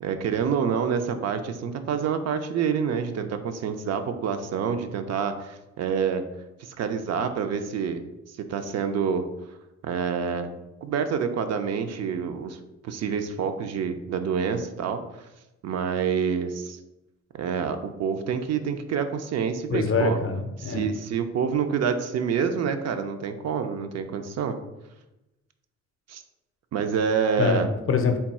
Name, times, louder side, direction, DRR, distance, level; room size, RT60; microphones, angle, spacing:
voice 1, 0.0-6.2 6.6-9.3 9.8-10.5 10.8-12.6 12.8-15.0 15.6-16.8 17.3-20.2 20.6-24.6 26.1-26.2 26.7-27.7, right 6 dB, 60° right, 8 dB, 0.5 m, -27 dB
voice 2, 19.7-20.9 27.4-28.2, left 4 dB, 45° left, 6 dB, 0.6 m, -24 dB
3.5 x 2.3 x 4.1 m, 0.96 s
cardioid pair, 90°, 30 cm